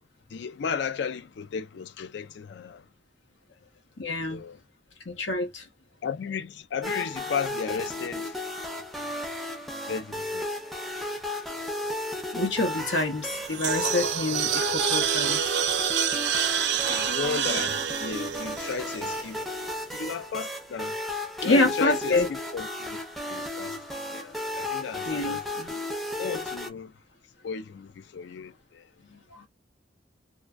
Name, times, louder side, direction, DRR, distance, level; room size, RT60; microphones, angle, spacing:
voice 1, 0.3-2.8 4.3-4.6 6.0-8.4 9.9-10.5 16.7-19.4 19.9-21.0 21.4-23.0 23.3-25.4 26.2-26.9 27.4-28.8, left 6 dB, 65° left, 0.3 m, -34 dB
voice 2, 4.0-4.4 5.1-5.6 12.3-15.5 21.4-22.3 25.1-25.7 29.3-29.4, left 2 dB, 80° left, 0.8 m, -27 dB
sound 1, 6.8-26.7, left 1 dB, ahead, 0.4 m, -34 dB
sound 2, 13.2-19.5, right 8 dB, 65° right, 0.4 m, -28 dB
2.5 x 2.2 x 2.3 m
head